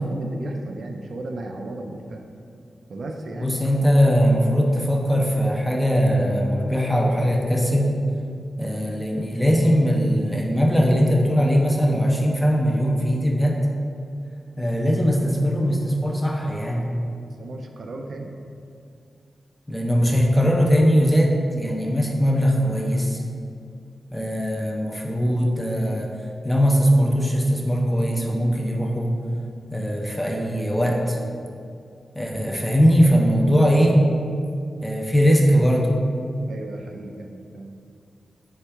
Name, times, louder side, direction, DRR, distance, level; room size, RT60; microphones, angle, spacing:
voice 1, 0.0-2.2 2.9-3.6 17.4-18.3 36.5-37.7, right 2 dB, 65° right, 2 dB, 0.4 m, -35 dB
voice 2, 3.4-7.9 8.6-13.6 14.6-16.9 19.7-23.2 24.1-26.1 26.4-29.2 29.7-31.2 32.2-34.0 34.8-35.9, equal, 5° left, -1 dB, 0.5 m, -20 dB
4.5 x 3.5 x 3.3 m, 2.4 s
wide cardioid pair, 115°, 0 cm